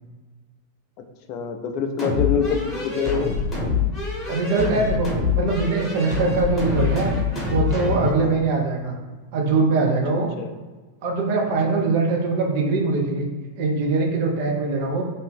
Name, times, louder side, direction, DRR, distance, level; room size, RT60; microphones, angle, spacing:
voice 1, 1.3-3.3 8.1-8.4 10.4-10.6 11.7-11.8, left 6 dB, 45° left, 5 dB, 0.4 m, -26 dB
sound 1, 2.0-8.2, left 5 dB, 20° left, 0.8 m, -25 dB
voice 2, 4.3-5.1 5.3-7.1 7.5-9.0 9.3-10.3 11.0-13.3 13.6-15.0, right 3 dB, 50° right, 0 dB, 0.6 m, -22 dB
2.7 x 2.5 x 3.4 m, 1.3 s
figure-of-eight pair, 90°, 0 cm